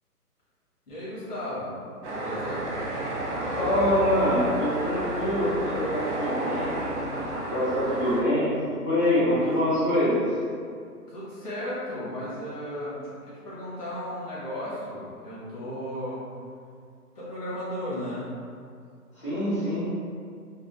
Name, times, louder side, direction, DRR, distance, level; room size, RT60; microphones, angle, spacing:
voice 1, 0.9-2.7 9.1-9.4 11.1-16.2 17.1-18.3, equal, 75° left, -10 dB, 1.4 m, -35 dB
sound 1, 2.0-8.2, right 1 dB, 50° right, 0.6 m, -31 dB
voice 2, 3.5-7.2 7.5-10.3 19.2-19.8, left 1 dB, 20° left, -13 dB, 0.5 m, -25 dB
3.5 x 2.1 x 2.5 m, 2.3 s
figure-of-eight pair, 145°, 47 cm